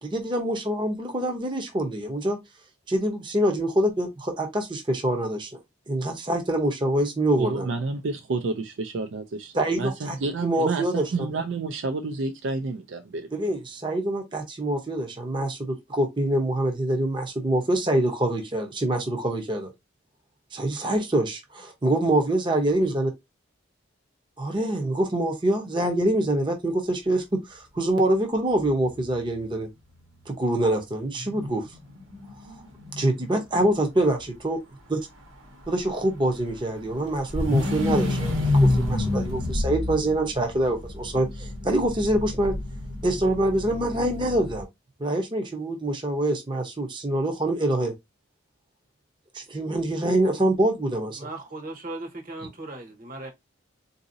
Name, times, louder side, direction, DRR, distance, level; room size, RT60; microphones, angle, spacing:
voice 1, 0.0-2.4 2.9-5.6 5.9-7.7 9.5-10.2 10.4-11.1 13.3-19.7 20.5-23.1 24.4-29.7 30.3-31.6 33.0-34.2 34.4-34.6 34.9-35.0 35.7-42.5 43.0-44.7 45.0-47.9 49.3-51.3, right 1 dB, 25° right, 0.7 m, -25 dB
voice 2, 7.4-13.3, right 3 dB, 70° right, 0.4 m, -29 dB
sound 1, 28.6-28.7 29.0-29.1 30.8-33.4 35.6-44.6, left 2 dB, 85° right, 1.3 m, -28 dB
voice 3, 51.2-53.3, right 2 dB, 45° right, 1.0 m, -37 dB
3.8 x 2.7 x 2.6 m
head